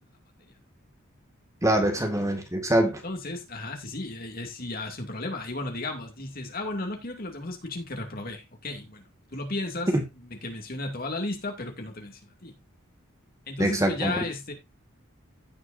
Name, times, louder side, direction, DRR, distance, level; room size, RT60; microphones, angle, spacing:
voice 1, 1.6-3.0 9.9-10.0 13.6-14.2, right 1 dB, 15° right, 1.9 m, -24 dB
voice 2, 3.0-9.9 10.2-12.5 13.5-14.5, left 2 dB, 45° left, 2.5 m, -34 dB
16.0 x 6.4 x 2.6 m
head